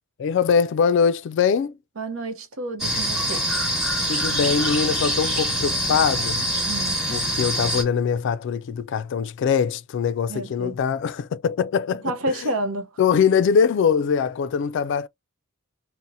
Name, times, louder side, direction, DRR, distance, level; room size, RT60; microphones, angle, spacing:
voice 1, 0.2-1.7 4.1-6.4 7.1-12.1 13.0-15.1, left 6 dB, 60° left, 0.3 m, -22 dB
voice 2, 2.0-3.4 6.6-7.0 10.3-10.8 12.0-12.9, right 1 dB, 90° right, 0.7 m, -29 dB
sound 1, 2.8-7.8, equal, 5° right, 1.1 m, -24 dB
3.9 x 2.0 x 2.6 m
head